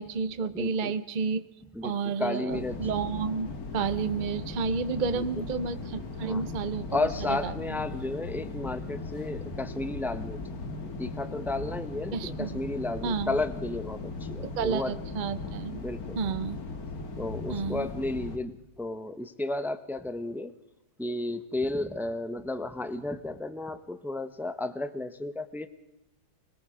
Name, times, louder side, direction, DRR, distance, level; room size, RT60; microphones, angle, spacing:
voice 1, 0.0-1.4 1.8-7.5 12.1-12.6 13.0-13.4 14.4-15.8 16.2-16.6 17.5-17.9, right 5 dB, 40° right, 12 dB, 0.7 m, -31 dB
voice 2, 0.5-0.9 1.7-2.8 5.1-5.2 6.2-6.4 6.9-10.4 10.8-14.9 15.8-16.2 17.2-20.5 21.0-25.7, left 2 dB, ahead, 10 dB, 0.4 m, -33 dB
sound 1, 2.5-18.4, left 3 dB, 55° left, 2.1 m, -38 dB
25.0 x 21.0 x 5.0 m, 0.94 s
omnidirectional pair, 2.0 m